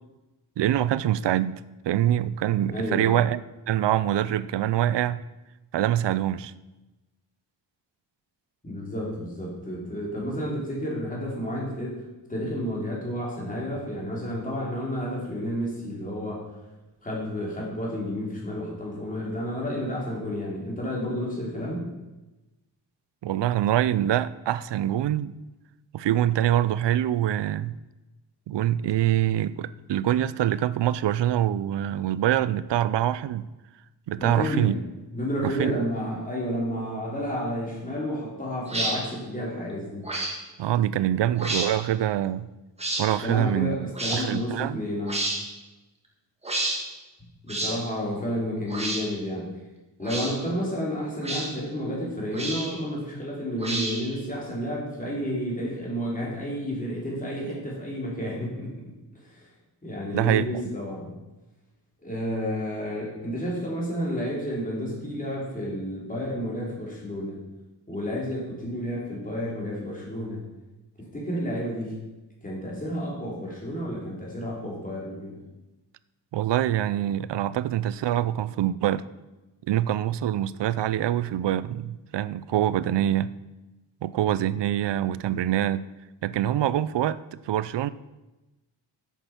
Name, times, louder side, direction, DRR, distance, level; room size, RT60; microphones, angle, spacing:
voice 1, 0.6-1.5 1.8-3.4 3.7-5.2 5.7-6.5 23.2-25.3 25.9-27.8 28.5-33.5 34.1-34.8 35.4-35.8 40.6-42.5 43.0-44.8 60.1-60.6 76.3-79.0 79.7-83.3 84.0-85.9 86.2-87.9, right 12 dB, 70° right, 16 dB, 0.6 m, -25 dB
voice 2, 2.7-3.2 8.6-12.0 12.3-16.4 17.0-21.9 34.2-34.8 35.1-40.1 43.2-45.2 47.4-49.5 50.0-58.7 59.1-59.5 59.8-61.1 62.0-67.4 67.9-70.5 71.0-72.0 72.4-75.4, equal, 20° left, -3 dB, 3.3 m, -31 dB
sound 1, 38.7-38.9 40.0-40.3 41.3-41.7 42.8-43.0 43.9-44.2 45.1-45.4 46.4-46.8 47.5-47.7 48.7-49.0 50.0-50.3 51.2-51.5 52.3-52.8 53.6-54.1, right 2 dB, 15° right, 1.9 m, -29 dB
10.5 x 8.2 x 5.8 m, 1.1 s
wide cardioid pair, 180°, 44 cm